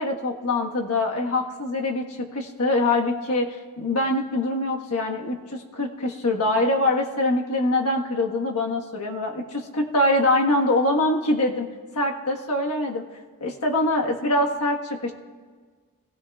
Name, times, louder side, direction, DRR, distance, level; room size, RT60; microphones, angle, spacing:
voice 1, 0.0-11.7 11.9-13.0 13.4-15.1, left 2 dB, 85° left, 1 dB, 1.4 m, -24 dB
22.0 x 16.5 x 2.4 m, 1.5 s
head